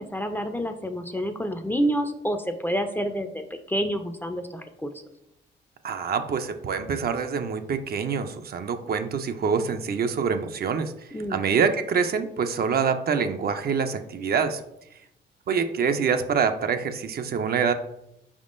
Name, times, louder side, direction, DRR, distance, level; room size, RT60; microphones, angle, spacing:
voice 1, 0.0-3.4 3.7-4.9 11.1-11.4, equal, 10° left, 7 dB, 0.4 m, -28 dB
voice 2, 5.8-10.9 11.3-14.6 15.5-17.7, right 6 dB, 50° right, 8 dB, 0.4 m, -25 dB
4.8 x 3.6 x 2.5 m, 0.81 s
cardioid pair, 65°, 20 cm